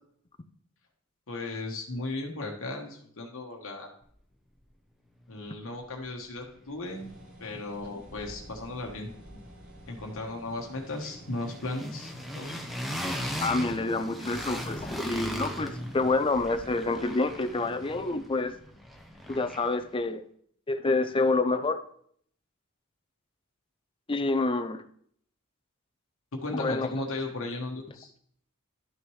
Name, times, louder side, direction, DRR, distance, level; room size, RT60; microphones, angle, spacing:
voice 1, 1.3-3.9 5.3-7.1 7.4-9.4 9.9-12.5 26.3-28.1, left 2 dB, 65° left, 1 dB, 1.2 m, -36 dB
sound 1, 6.0-6.1 6.3-7.4 7.7-19.9, equal, ahead, 0.9 m, -39 dB
sound 2, 6.8-18.1, equal, 80° right, 2.4 m, -52 dB
voice 2, 13.4-18.5 19.3-20.2 20.7-21.8 24.1-24.8 26.5-26.9, left 3 dB, 25° left, 9 dB, 0.6 m, -27 dB
11.5 x 6.1 x 3.2 m, 0.63 s
head